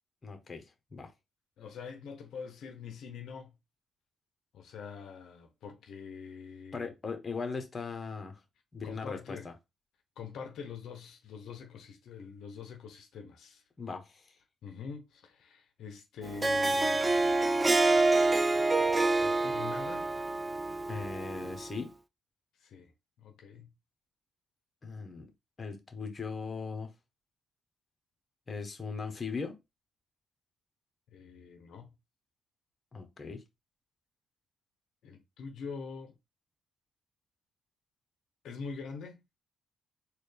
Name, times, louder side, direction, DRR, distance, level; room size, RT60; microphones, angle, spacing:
voice 1, 0.2-1.1 6.7-8.4 8.7-9.5 13.8-14.4 20.9-21.9 24.8-25.3 25.6-26.9 28.5-29.6 32.9-33.4, left 4 dB, 30° left, 0.9 m, -39 dB
voice 2, 1.6-3.5 4.5-6.9 8.8-9.5 10.2-13.6 14.6-17.3 19.2-20.1 22.6-22.9 23.2-23.7 31.1-31.9 35.0-36.1 38.4-39.2, left 5 dB, 75° left, 0.6 m, -44 dB
Harp, 16.2-21.7, right 2 dB, 20° right, 0.4 m, -27 dB
4.1 x 2.3 x 3.3 m
cardioid pair, 90°, 0 cm